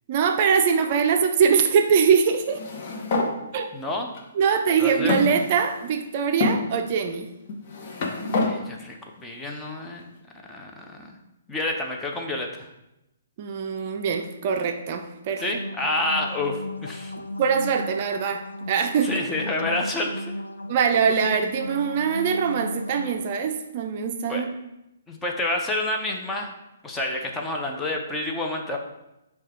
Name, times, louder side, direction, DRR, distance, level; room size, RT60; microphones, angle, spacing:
voice 1, 0.1-2.6 3.5-3.7 4.3-7.3 13.4-15.4 17.2-19.1 20.7-24.5, right 6 dB, 40° right, 5 dB, 0.4 m, -23 dB
sound 1, 2.5-3.3 4.1-4.2 5.1-5.9 6.4-6.6 7.5-8.5, left 3 dB, 45° left, 0.8 m, -26 dB
voice 2, 3.7-4.1 4.8-5.1 8.4-10.1 10.5-11.2 11.5-12.7 15.4-17.1 19.0-20.4 24.3-24.4 25.1-26.5 26.8-28.8, left 2 dB, 10° left, 1 dB, 0.6 m, -29 dB
sound 2, 15.2-23.2, left 1 dB, 90° left, 0.5 m, -36 dB
4.7 x 2.3 x 4.3 m, 0.89 s
figure-of-eight pair, 130°, 0 cm